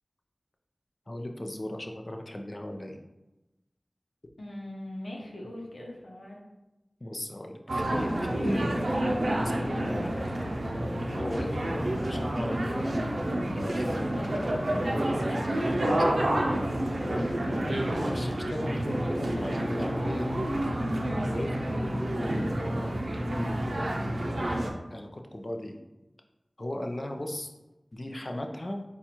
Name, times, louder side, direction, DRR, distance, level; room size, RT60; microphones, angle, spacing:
voice 1, 1.1-3.0 7.0-10.1 10.8-16.1 17.0-20.4 21.2-23.9 24.9-25.8 26.6-27.5 27.9-28.8, left 1 dB, 45° left, 3 dB, 0.5 m, -37 dB
voice 2, 4.4-6.4 11.5-11.7 21.8-22.0, left 1 dB, 85° left, -2 dB, 0.8 m, -42 dB
sound 1, 7.7-24.7, right 1 dB, 85° right, 0.5 m, -29 dB
4.1 x 2.3 x 4.3 m, 1.0 s
wide cardioid pair, 45°, 0 cm